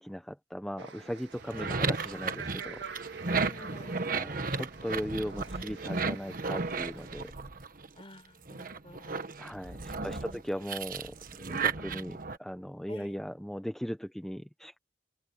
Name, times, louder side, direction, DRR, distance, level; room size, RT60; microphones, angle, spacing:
voice 1, 0.0-2.8 4.0-7.3 9.4-11.1 11.5-14.8, equal, ahead, 0.7 m, -38 dB
sound 1, 0.8-7.3, right 5 dB, 70° right, 1.8 m, -46 dB
sound 2, 1.3-8.0 8.5-12.4, right 4 dB, 50° right, 1.4 m, -34 dB
voice 2, 1.5-1.9 3.3-4.1 7.9-9.2 10.0-10.4 12.9-13.2, left 1 dB, 30° left, 4.6 m, -52 dB
open air
head